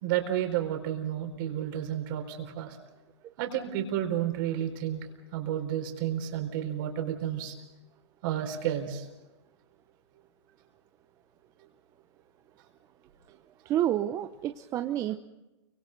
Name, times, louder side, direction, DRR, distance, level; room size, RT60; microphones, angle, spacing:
voice 1, 0.0-2.8 3.4-7.5 8.2-9.1, right 10 dB, 45° right, 5 dB, 4.2 m, -31 dB
voice 2, 13.6-15.2, right 12 dB, 20° right, 8 dB, 0.7 m, -29 dB
30.0 x 24.5 x 4.0 m, 0.99 s
hypercardioid pair, 145°, 15 cm